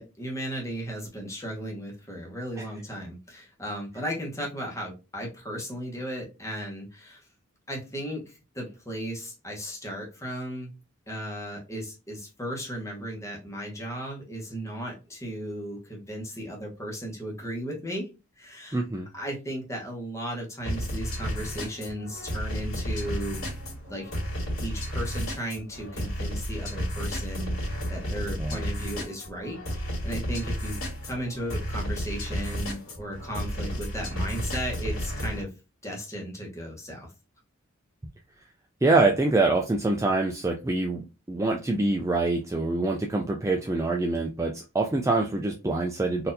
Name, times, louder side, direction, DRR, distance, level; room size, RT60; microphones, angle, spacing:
voice 1, 0.0-7.3 7.7-10.7 11.1-18.1 18.4-18.8 19.1-23.4 23.9-24.1 24.6-35.5 35.8-37.1, equal, 15° left, -1 dB, 1.1 m, -35 dB
voice 2, 18.7-19.1 28.4-28.6 38.8-46.3, right 2 dB, 15° right, 1 dB, 0.3 m, -25 dB
sound 1, 20.7-35.4, equal, 85° left, 2.0 m, -32 dB
4.1 x 2.7 x 2.6 m, 0.28 s
head